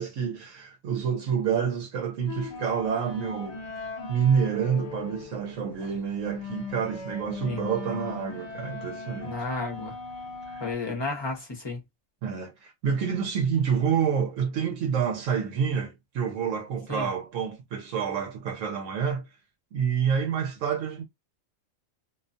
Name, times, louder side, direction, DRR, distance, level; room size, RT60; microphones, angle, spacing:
voice 1, 0.0-3.6 4.1-9.4 10.5-10.6 12.2-19.2 19.7-21.0, right 7 dB, 80° right, 1.0 m, -28 dB
sound 1, 2.3-10.7, left 4 dB, 60° left, 0.9 m, -39 dB
voice 2, 9.2-10.0 10.6-11.8 16.9-17.1, left 3 dB, 25° left, 0.7 m, -32 dB
2.4 x 2.2 x 2.5 m
omnidirectional pair, 1.4 m